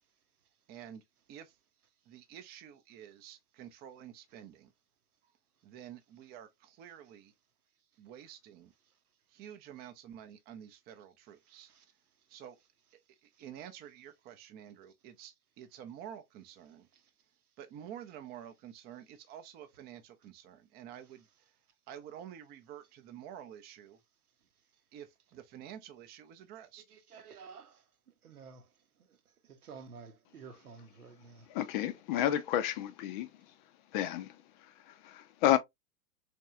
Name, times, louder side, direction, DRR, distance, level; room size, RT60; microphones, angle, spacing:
voice 1, 0.7-1.0 1.3-1.6 2.1-4.7 5.6-7.3 8.0-8.7 9.3-11.7 12.3-12.6 13.2-16.9 17.6-21.5 21.9-24.0 24.9-26.8, right 10 dB, 25° right, 0.5 m, -49 dB
voice 2, 26.9-27.8 28.2-28.7 29.1-29.2 29.4-31.5, right 5 dB, 85° right, 0.9 m, -51 dB
voice 3, 31.5-33.3 33.9-35.6, left 12 dB, 35° left, 0.5 m, -31 dB
4.3 x 3.1 x 2.2 m
hypercardioid pair, 110°, 44 cm